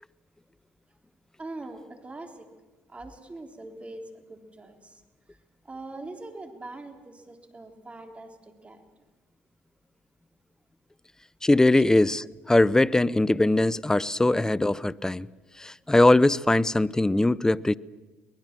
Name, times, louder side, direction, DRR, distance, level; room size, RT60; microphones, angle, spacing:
voice 1, 1.4-2.5 2.9-5.0 5.3-5.4 5.6-8.8 11.8-11.9, right 2 dB, 25° right, 3.7 m, -42 dB
voice 2, 11.4-15.3 15.6-17.7, left 2 dB, 10° left, 0.7 m, -21 dB
23.5 x 20.5 x 7.6 m
hypercardioid pair, 60°, 5 cm